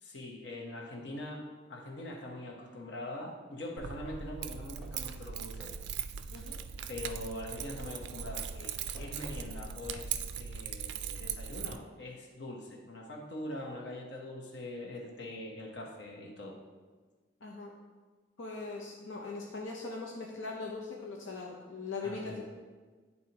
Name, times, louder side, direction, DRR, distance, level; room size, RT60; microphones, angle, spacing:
voice 1, 0.0-1.4 1.7-5.7 6.9-16.6 22.0-22.5, left 1 dB, 65° left, -1 dB, 1.0 m, -43 dB
Keys jangling, 3.8-11.8, right 8 dB, 60° right, 0.3 m, -39 dB
sound 1, 4.8-10.9, right 1 dB, ahead, 0.7 m, -54 dB
voice 2, 17.4-17.7 18.4-22.6, left 3 dB, 85° left, -1 dB, 0.7 m, -40 dB
11.0 x 4.1 x 2.9 m, 1.4 s
head